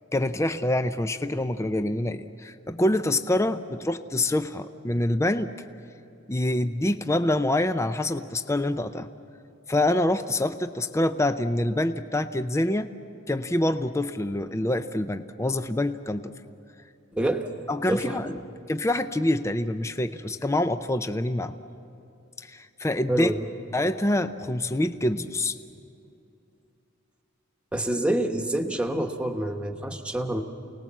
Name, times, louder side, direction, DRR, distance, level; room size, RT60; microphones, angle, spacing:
voice 1, 0.1-5.5 6.3-9.1 9.7-12.9 13.3-16.3 17.7-18.3 18.7-21.5 22.4-23.3 23.7-25.6, left 1 dB, 15° left, 10 dB, 0.5 m, -26 dB
voice 2, 17.1-17.5 17.9-18.4 23.1-23.4 27.7-30.4, right 1 dB, 5° right, 3 dB, 1.2 m, -27 dB
29.0 x 19.0 x 7.3 m, 2.7 s
head